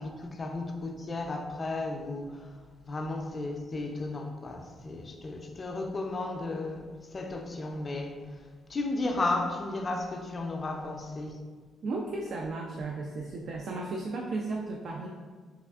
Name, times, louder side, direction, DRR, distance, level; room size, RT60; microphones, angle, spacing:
voice 1, 0.0-2.6 2.8-11.4, left 2 dB, 35° left, 0.4 m, -34 dB
voice 2, 11.8-15.1, right 3 dB, 60° right, 0.3 m, -34 dB
4.2 x 2.4 x 2.3 m
cardioid pair, 90°, 0 cm